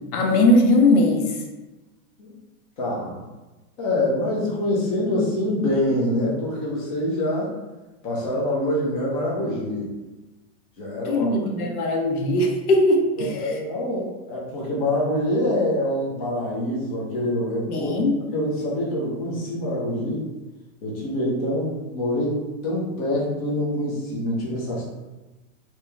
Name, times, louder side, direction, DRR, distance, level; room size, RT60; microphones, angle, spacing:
voice 1, 0.1-1.3 11.1-13.5 17.7-18.2, left 1 dB, 80° left, 2 dB, 0.8 m, -19 dB
voice 2, 2.8-3.2 3.8-7.5 8.0-9.9 10.8-11.3 13.2-17.9 18.3-20.2 20.8-24.8, left 1 dB, 25° left, -5 dB, 0.6 m, -25 dB
2.9 x 2.9 x 3.4 m, 1.1 s
supercardioid pair, 170°, 43 cm